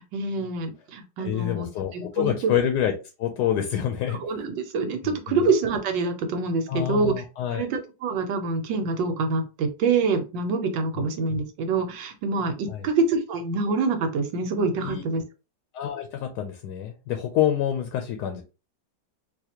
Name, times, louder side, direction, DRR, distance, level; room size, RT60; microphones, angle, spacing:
voice 1, 0.0-2.5 4.1-7.1 7.5-15.2, right 4 dB, 85° right, 6 dB, 1.4 m, -26 dB
voice 2, 1.2-2.9 3.2-4.2 5.0-5.4 6.7-7.6 11.0-11.1 12.7-12.9 14.8-15.0 15.7-18.4, left 10 dB, 75° left, 4 dB, 1.1 m, -27 dB
4.1 x 2.5 x 2.8 m, 0.30 s
omnidirectional pair, 1.9 m